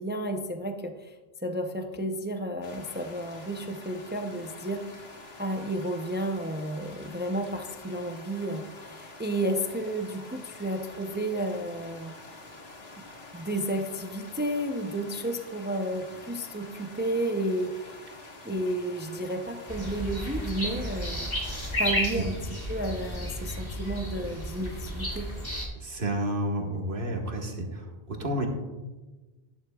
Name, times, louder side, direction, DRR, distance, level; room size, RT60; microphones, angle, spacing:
voice 1, 0.0-4.9 5.4-12.1 13.3-17.9 18.4-21.3 21.8-22.4 22.7-25.3, right 1 dB, 15° right, 5 dB, 0.4 m, -32 dB
sound 1, 2.6-21.9, left 2 dB, 80° left, 1.7 m, -47 dB
sound 2, 19.7-25.6, equal, 25° left, 2.2 m, -32 dB
voice 2, 25.8-28.5, right 1 dB, 60° right, 1 dB, 1.5 m, -31 dB
11.5 x 11.0 x 2.3 m, 1.2 s
omnidirectional pair, 1.0 m